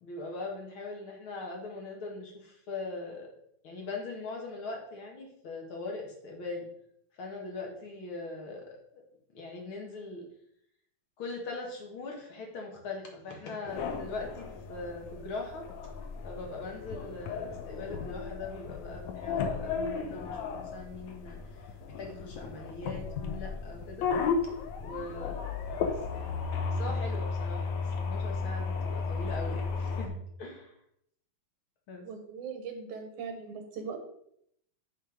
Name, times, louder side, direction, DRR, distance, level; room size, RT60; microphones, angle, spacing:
voice 1, 0.0-3.3 3.6-6.7 7.2-9.0 9.3-10.3 11.2-15.7 16.2-21.4 22.0-24.1 24.8-25.5 25.8-26.4 26.7-30.7 31.9-32.1, left 3 dB, 50° left, 1 dB, 2.1 m, -41 dB
sound 1, 13.7-30.1, left 5 dB, 75° left, 2.2 m, -34 dB
voice 2, 32.0-34.0, right 5 dB, 80° right, 5 dB, 2.7 m, -40 dB
9.2 x 4.5 x 4.9 m, 0.72 s
omnidirectional pair, 3.4 m